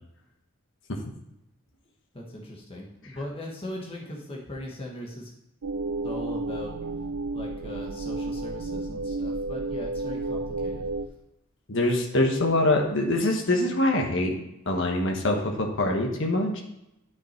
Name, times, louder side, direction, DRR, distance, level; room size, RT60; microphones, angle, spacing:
voice 1, 2.1-5.3 6.0-6.7 7.3-10.8, left 1 dB, 25° left, -1 dB, 1.4 m, -39 dB
sound 1, 5.6-11.1, right 2 dB, 80° right, 0.6 m, -32 dB
voice 2, 11.7-14.4 14.7-16.6, left 1 dB, 55° left, 2 dB, 1.3 m, -24 dB
9.5 x 6.2 x 4.4 m, 0.88 s
head